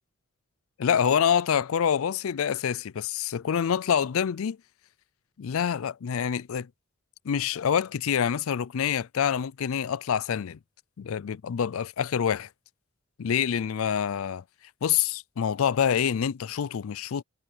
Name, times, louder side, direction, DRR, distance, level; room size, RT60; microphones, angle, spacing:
voice 1, 0.8-4.6 5.4-6.7 7.2-10.6 11.0-12.5 13.2-14.4 14.8-17.2, left 8 dB, 75° left, 0.4 m, -26 dB
head